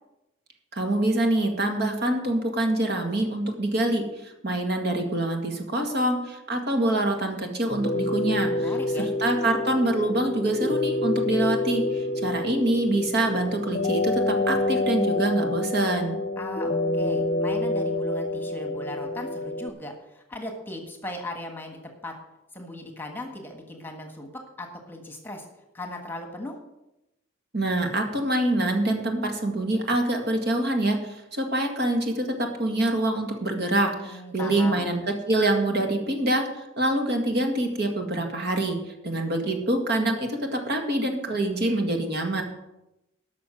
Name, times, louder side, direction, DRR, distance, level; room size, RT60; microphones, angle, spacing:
voice 1, 0.7-14.2 14.5-16.2 27.5-32.3 32.6-38.8 39.0-42.4, right 1 dB, 50° right, 4 dB, 1.9 m, -25 dB
sound 1, 7.7-19.7, left 2 dB, 35° left, 0.8 m, -27 dB
voice 2, 8.5-9.1 16.4-22.1 22.5-24.3 24.6-25.4 25.7-26.6 34.0-34.8, left 1 dB, 10° left, 3 dB, 1.5 m, -38 dB
12.5 x 6.2 x 7.7 m, 0.92 s
head